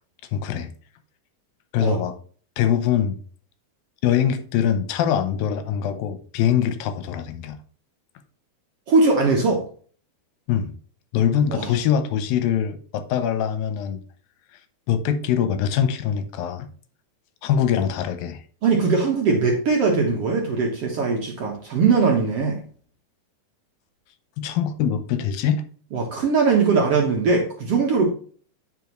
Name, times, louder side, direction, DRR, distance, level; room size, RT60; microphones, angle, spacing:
voice 1, 0.3-0.7 1.7-2.1 2.6-3.2 4.0-7.6 10.5-10.8 11.1-14.0 14.9-16.7 17.4-18.4 24.4-25.6, left 9 dB, 80° left, 2.5 m, -23 dB
voice 2, 8.9-9.6 11.5-11.7 18.6-22.6 25.9-28.1, right 4 dB, 55° right, 1.8 m, -20 dB
9.2 x 5.2 x 3.0 m
omnidirectional pair, 4.1 m